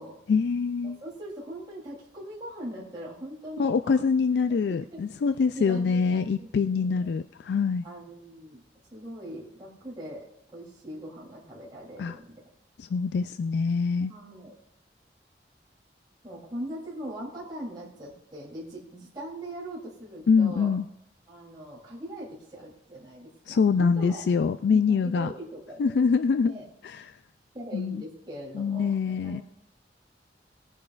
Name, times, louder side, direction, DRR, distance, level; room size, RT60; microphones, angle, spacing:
voice 1, 0.3-1.0 3.6-7.8 12.0-12.2 12.8-14.1 20.3-20.8 23.5-25.3 25.8-26.5 26.8-27.0 27.7-28.0 28.5-29.4, left 5 dB, 75° left, 11 dB, 0.3 m, -24 dB
voice 2, 0.8-4.1 4.5-5.0 5.5-7.1 7.8-8.6 8.9-12.5 14.1-14.5 16.2-20.8 21.3-24.2 24.7-26.0 26.4-26.6 27.5-29.4, right 1 dB, 25° right, -6 dB, 3.1 m, -41 dB
19.0 x 9.5 x 2.4 m, 0.76 s
head